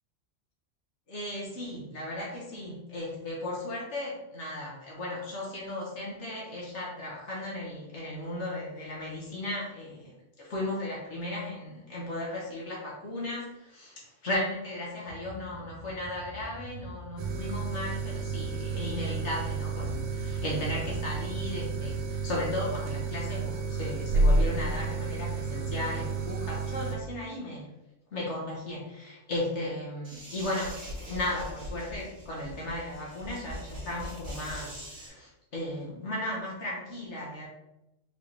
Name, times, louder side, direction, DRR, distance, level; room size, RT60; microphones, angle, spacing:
voice 1, 1.1-10.1 10.4-27.7 28.1-30.8 31.1-37.5, left 1 dB, 65° left, -4 dB, 1.3 m, -36 dB
sound 1, 15.0-22.1, left 1 dB, 30° left, 1.3 m, -45 dB
sound 2, 17.2-27.0, right 3 dB, 85° right, 1.0 m, -30 dB
sound 3, 30.0-35.1, equal, 50° right, 1.5 m, -42 dB
4.9 x 3.2 x 2.8 m, 0.92 s
omnidirectional pair, 1.3 m